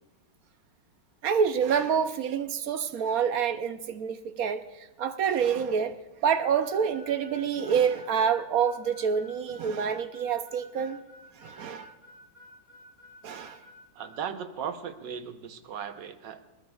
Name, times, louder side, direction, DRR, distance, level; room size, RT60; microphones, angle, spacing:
voice 1, 1.2-11.0 11.3-11.9 13.2-13.6, right 7 dB, 65° right, 1.0 m, -27 dB
Harmonica, 6.6-14.2, left 2 dB, 35° right, 5.6 m, -52 dB
voice 2, 13.9-16.4, right 7 dB, 85° right, 1.6 m, -37 dB
24.5 x 20.0 x 2.4 m
omnidirectional pair, 1.9 m